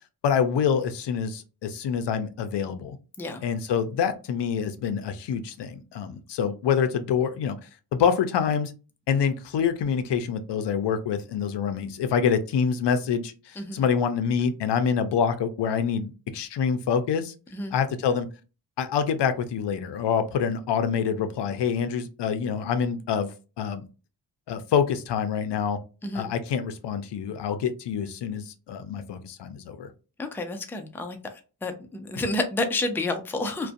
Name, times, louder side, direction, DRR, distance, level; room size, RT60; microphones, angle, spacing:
voice 1, 0.2-3.0 3.4-7.6 7.9-8.7 9.1-17.3 17.7-18.3 18.8-23.3 23.6-23.8 24.5-25.8 26.1-29.9, left 7 dB, 75° left, 9 dB, 0.5 m, -26 dB
voice 2, 30.2-31.2 31.6-33.7, left 2 dB, 5° left, 5 dB, 0.4 m, -29 dB
2.5 x 2.2 x 2.4 m, 0.33 s
wide cardioid pair, 95°, 43 cm